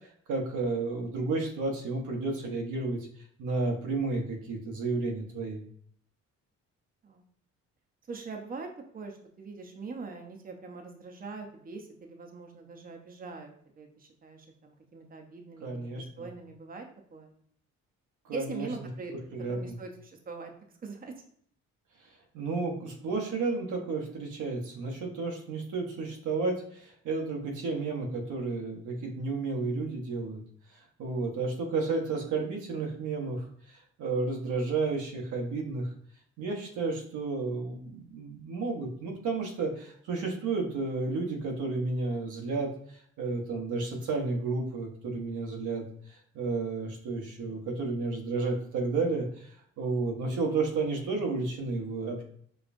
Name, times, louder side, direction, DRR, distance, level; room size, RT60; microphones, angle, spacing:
voice 1, 0.3-3.1 3.4-5.6 15.6-16.3 18.2-18.7 19.1-19.8 22.3-30.4 30.7-35.9 36.4-52.2, right 3 dB, 80° right, 1 dB, 1.0 m, -32 dB
voice 2, 8.1-16.9 17.1-17.3 18.3-19.1 19.5-20.5 20.8-21.1, right 4 dB, 30° right, 3 dB, 0.7 m, -42 dB
5.1 x 2.3 x 2.6 m, 0.63 s
cardioid pair, 90°, 30 cm